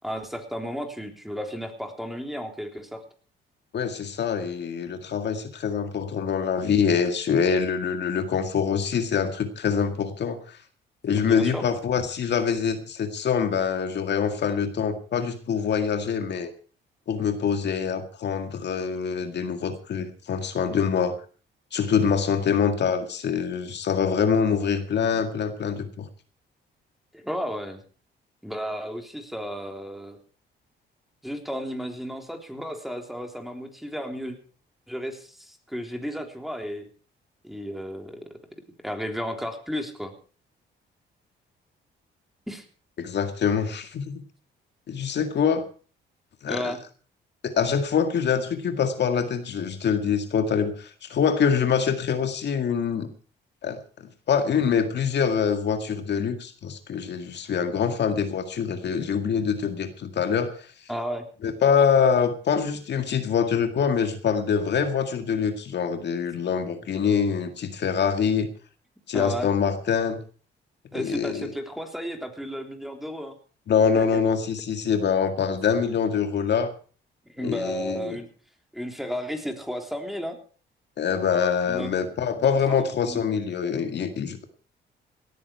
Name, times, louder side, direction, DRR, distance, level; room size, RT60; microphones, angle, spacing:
voice 1, 0.0-3.0 11.1-11.7 27.1-27.8 28.4-30.2 31.2-34.4 34.9-36.9 37.4-38.2 38.8-40.1 42.5-42.6 46.5-46.8 60.9-61.3 69.1-69.5 70.9-73.3 74.0-74.2 77.3-78.3 78.7-80.4 81.6-81.9 82.4-83.2, equal, ahead, 4 dB, 3.5 m, -33 dB
voice 2, 3.7-10.6 11.0-16.5 17.1-21.1 21.7-26.1 43.0-44.2 44.9-45.7 46.4-46.7 47.4-53.1 53.6-53.8 54.3-60.7 61.4-68.5 69.1-70.2 70.9-71.5 73.7-76.7 77.4-78.2 81.0-84.4, left 6 dB, 60° left, 7 dB, 2.0 m, -25 dB
18.0 x 13.5 x 4.6 m, 0.40 s
cardioid pair, 90°, 20 cm